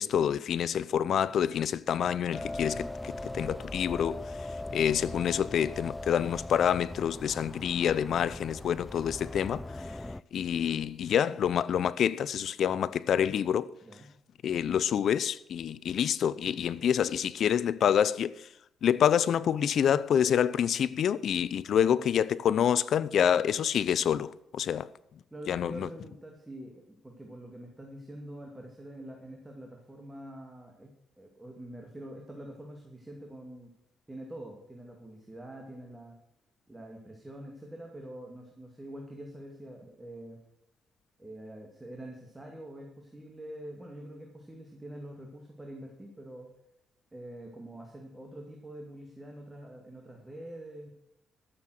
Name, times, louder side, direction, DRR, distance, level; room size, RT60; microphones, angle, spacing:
voice 1, 0.0-4.2 4.7-9.6 10.3-13.7 14.4-18.3 18.8-24.9 25.5-25.9, left 9 dB, 65° left, 0.5 m, -27 dB
sound 1, 2.3-10.2, left 2 dB, 10° left, 0.3 m, -40 dB
voice 2, 13.5-14.1 25.3-30.9 31.2-33.7 34.1-36.2 36.7-40.4 41.2-46.5 47.1-50.9, right 1 dB, 15° right, 2.3 m, -45 dB
13.5 x 7.6 x 6.5 m
cardioid pair, 90°, 0 cm